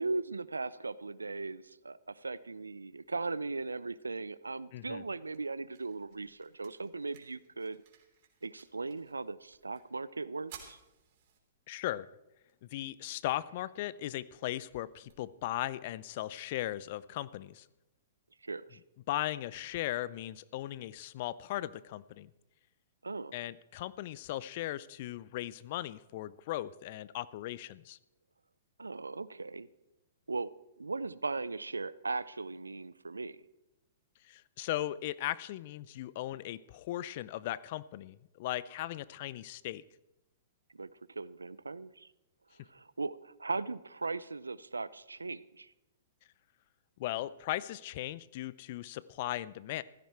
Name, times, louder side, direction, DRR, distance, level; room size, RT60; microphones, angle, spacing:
voice 1, 0.0-7.8 8.4-10.8 18.4-18.8 23.0-23.4 28.8-29.7 30.3-30.5 30.8-33.4 40.7-42.1 42.7-45.7, right 3 dB, 85° right, 18 dB, 0.5 m, -38 dB
voice 2, 4.7-5.0 11.7-12.1 12.7-17.7 19.1-22.3 23.3-28.0 34.2-39.8 47.0-49.8, left 14 dB, 50° left, 19 dB, 0.6 m, -37 dB
sound 1, 4.7-16.7, right 8 dB, 50° right, 3.3 m, -60 dB
15.5 x 13.5 x 4.4 m, 0.94 s
figure-of-eight pair, 110°, 0 cm